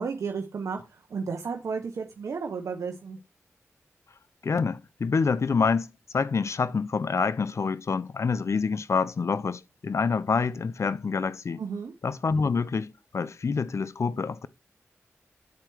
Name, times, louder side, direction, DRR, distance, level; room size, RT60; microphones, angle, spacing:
voice 1, 0.0-3.2 11.6-11.9, right 5 dB, 80° right, 0.9 m, -33 dB
voice 2, 4.4-11.6 12.0-14.5, left 5 dB, 65° left, 0.5 m, -27 dB
9.4 x 4.4 x 4.6 m
cardioid pair, 40°, 5 cm